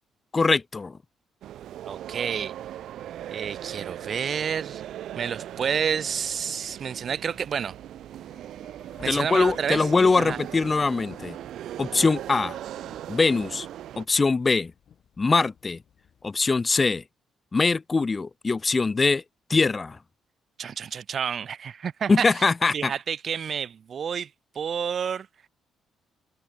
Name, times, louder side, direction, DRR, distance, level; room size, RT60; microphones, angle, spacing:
voice 1, 0.3-1.0 9.1-11.4 11.8-12.6 13.1-13.7 14.0-14.7 15.2-15.8 16.2-17.0 17.5-19.2 19.5-20.0 22.1-22.9, left 4 dB, 30° left, 0.7 m, -22 dB
sound 1, 1.4-14.0, right 11 dB, 75° right, 0.8 m, -39 dB
voice 2, 1.9-2.5 3.3-4.8 5.2-7.7 9.0-9.8 10.2-10.4 20.6-22.2 22.7-24.3 24.5-25.3, right 7 dB, 50° right, 0.9 m, -29 dB
Thunder / Rain, 5.4-16.2, left 9 dB, 60° left, 7.7 m, -54 dB
cardioid pair, 90°, 0 cm